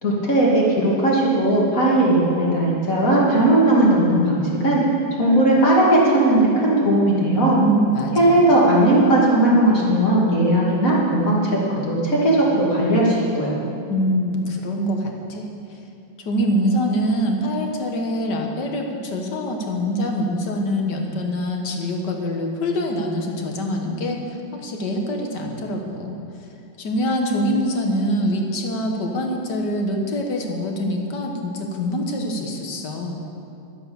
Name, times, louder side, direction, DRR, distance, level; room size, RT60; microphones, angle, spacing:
voice 1, 0.0-4.8 5.2-7.6 8.1-13.5, right 1 dB, 40° left, -4 dB, 2.8 m, -17 dB
voice 2, 7.6-8.4 13.9-15.5 16.3-24.2 24.5-26.2 26.8-33.2, equal, 60° left, 2 dB, 1.9 m, -24 dB
11.0 x 9.5 x 7.0 m, 2.6 s
omnidirectional pair, 2.2 m